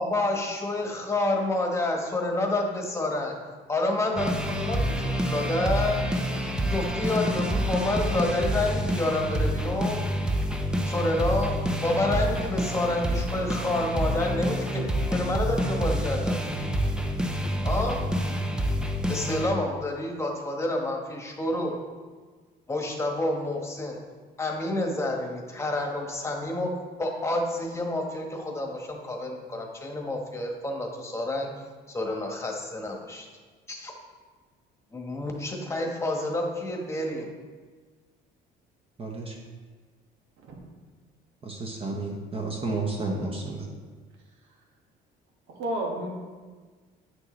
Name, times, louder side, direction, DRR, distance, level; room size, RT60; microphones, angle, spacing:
voice 1, 0.0-3.3 3.7-6.0 6.7-10.1 10.8-11.5 11.8-16.5 17.6-18.0 19.1-21.7 22.7-24.0 24.4-26.7 27.0-31.5 31.9-33.3 33.7-33.9 34.9-37.3, left 2 dB, 15° left, 1 dB, 1.3 m, -29 dB
sound 1, 4.2-19.5, equal, 5° right, 0.6 m, -28 dB
voice 2, 39.0-39.4 41.4-43.7, right 3 dB, 30° right, 0 dB, 1.0 m, -31 dB
voice 3, 45.5-46.1, right 1 dB, 85° right, -1 dB, 1.8 m, -31 dB
9.5 x 6.4 x 3.2 m, 1.4 s
cardioid pair, 120°, 18 cm